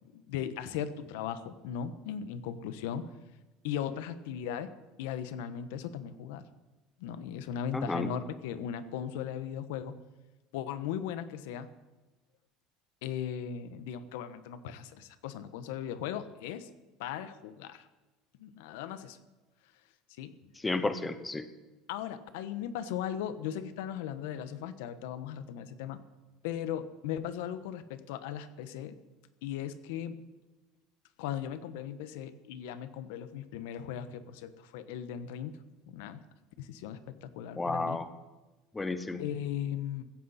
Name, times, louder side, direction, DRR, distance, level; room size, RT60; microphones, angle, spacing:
voice 1, 0.0-3.0 3.6-4.7 5.0-6.4 7.0-10.0 10.5-11.7 13.0-16.7 17.0-17.9 18.4-19.2 20.2-20.4 21.9-26.0 26.4-29.0 29.4-30.2 31.2-35.6 35.9-36.2 36.6-38.0 39.2-40.0, left 9 dB, 90° left, 12 dB, 1.1 m, -37 dB
voice 2, 7.7-8.1 20.6-21.5 37.6-38.1 38.7-39.2, left 3 dB, 10° left, 11 dB, 0.7 m, -32 dB
16.0 x 15.5 x 4.2 m, 1.2 s
cardioid pair, 175°, 0 cm